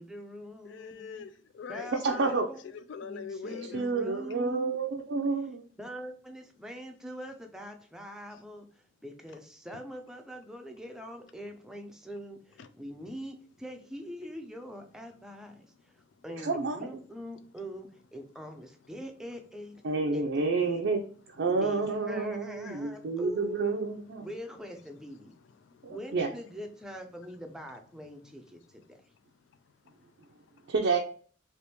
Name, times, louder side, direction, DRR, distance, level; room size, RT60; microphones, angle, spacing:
voice 1, 0.0-1.3 1.7-2.6 3.0-4.8 5.8-19.8 20.1-20.7 21.5-23.8 24.2-25.3 25.9-29.0, equal, 5° right, 0.4 m, -43 dB
voice 2, 0.6-3.8 8.3-8.4 12.6-12.7 22.6-23.1 25.6-25.9 29.9-30.3, left 5 dB, 80° left, 0.4 m, -44 dB
voice 3, 2.0-2.5 3.7-5.6 16.4-17.0 19.8-21.1 21.4-24.3 25.8-26.3 30.7-31.0, right 4 dB, 75° right, 0.4 m, -29 dB
3.4 x 2.9 x 2.8 m
head